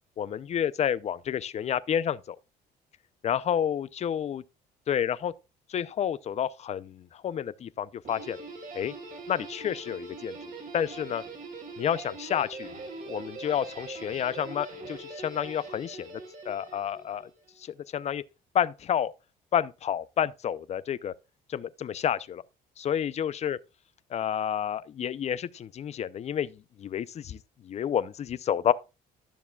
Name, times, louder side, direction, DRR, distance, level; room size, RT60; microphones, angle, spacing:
voice 1, 0.2-2.4 3.2-4.4 4.9-5.3 5.7-8.4 8.7-8.9 9.3-11.2 11.8-12.7 13.1-16.1 16.5-17.3 17.6-18.2 18.5-19.1 19.5-21.1 21.5-22.4 22.8-23.6 24.1-28.7, left 9 dB, 40° left, 0.5 m, -30 dB
Guitar, 8.0-17.4, right 3 dB, 55° right, 3.8 m, -42 dB
12.0 x 7.0 x 2.3 m
cardioid pair, 110°, 17 cm